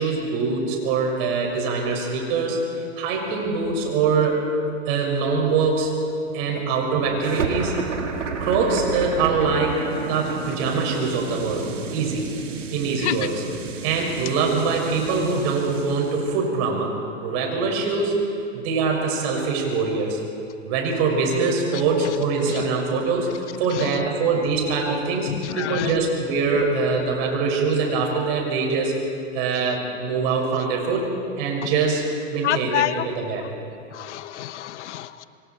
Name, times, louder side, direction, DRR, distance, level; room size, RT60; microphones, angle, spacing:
voice 1, 0.0-2.6 3.0-4.4 4.9-5.9 6.3-7.8 8.4-11.7 11.9-12.3 12.7-13.4 13.8-18.2 18.5-20.2 20.7-23.3 23.6-28.9 29.3-31.1 31.4-32.0 32.3-33.4, right 4 dB, 55° right, 1 dB, 6.3 m, -23 dB
sound 1, 7.2-16.3, right 5 dB, 90° right, 2.1 m, -31 dB
voice 2, 25.3-25.9 31.6-31.7 32.4-33.0 33.9-35.2, left 12 dB, 70° left, 14 dB, 1.0 m, -27 dB
27.0 x 23.5 x 4.6 m, 2.7 s
hypercardioid pair, 115°, 36 cm